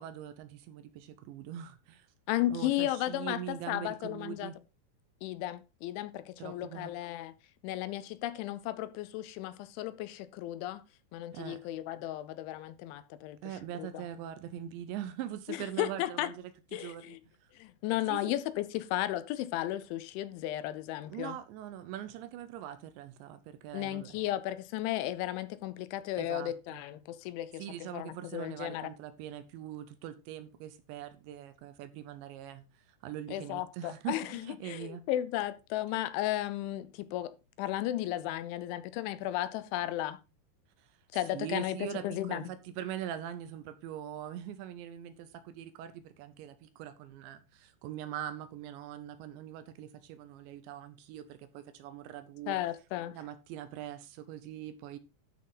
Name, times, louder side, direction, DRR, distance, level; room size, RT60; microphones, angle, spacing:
voice 1, 0.0-2.1 2.5-4.6 6.4-6.9 11.3-11.6 13.4-16.3 16.7-17.5 18.1-18.4 21.0-24.2 26.2-26.8 27.6-35.1 40.8-41.0 41.3-52.6 53.1-55.0, right 11 dB, 75° right, 2.9 m, -42 dB
voice 2, 2.3-4.5 5.2-7.3 7.6-10.8 11.1-13.4 13.8-14.0 15.5-16.3 16.7-17.2 17.5-21.4 23.7-27.6 27.9-28.9 33.3-37.3 37.6-40.2 41.1-41.8 42.0-42.4 52.5-53.2, left 14 dB, 80° left, 3.0 m, -34 dB
12.5 x 6.4 x 3.9 m
omnidirectional pair, 5.6 m